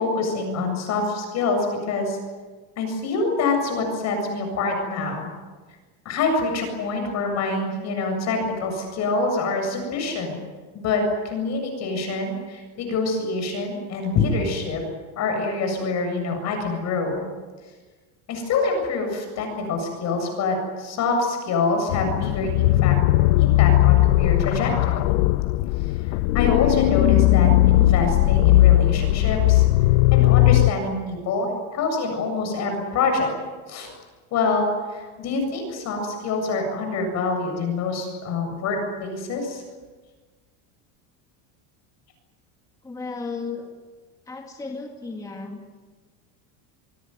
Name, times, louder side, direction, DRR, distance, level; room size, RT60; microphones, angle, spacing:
voice 1, 0.0-2.2 2.8-5.3 6.0-10.4 10.7-14.8 15.2-17.2 18.3-23.0 23.4-25.1 26.0-29.6 30.1-33.3 33.7-33.9 34.3-39.6, left 3 dB, 35° left, 4 dB, 7.6 m, -26 dB
sound 1, 21.9-30.7, left 17 dB, 65° left, 0.7 m, -18 dB
voice 2, 42.8-43.7 44.3-45.6, left 4 dB, 10° left, 2 dB, 2.1 m, -34 dB
27.5 x 21.0 x 9.5 m, 1.3 s
cardioid pair, 175°, 43 cm